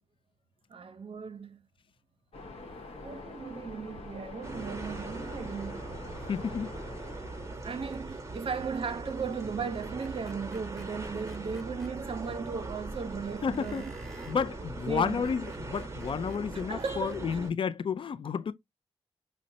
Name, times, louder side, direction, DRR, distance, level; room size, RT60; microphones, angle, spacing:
voice 1, 0.7-1.6 3.0-5.9 7.6-13.9 14.9-15.3 16.7-17.4, right 5 dB, 60° right, 0.6 m, -37 dB
Waves surf, 2.3-7.6, left 2 dB, 70° left, 0.9 m, -45 dB
sound 1, 4.4-17.5, right 2 dB, 25° right, 0.8 m, -40 dB
voice 2, 6.3-6.7 13.4-13.8 14.3-18.5, left 6 dB, 55° left, 0.4 m, -31 dB
Screech, 10.0-11.9 13.5-14.4 15.0-17.2, right 1 dB, ahead, 0.9 m, -54 dB
5.0 x 2.1 x 2.7 m
cardioid pair, 75°, 11 cm